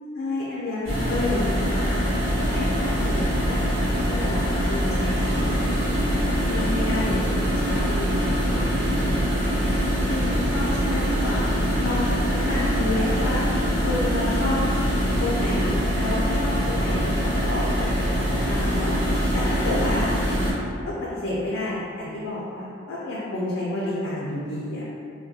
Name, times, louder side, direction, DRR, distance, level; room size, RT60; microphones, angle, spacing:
voice 1, 0.0-1.8 2.2-9.5 10.1-11.5 11.8-13.4 13.8-14.6 15.2-18.1 18.5-18.9 19.3-20.1 20.8-24.9, left 2 dB, 70° left, -8 dB, 0.4 m, -30 dB
sound 1, 0.8-20.5, equal, 75° right, 1.1 m, -23 dB
2.3 x 2.1 x 2.6 m, 2.5 s
head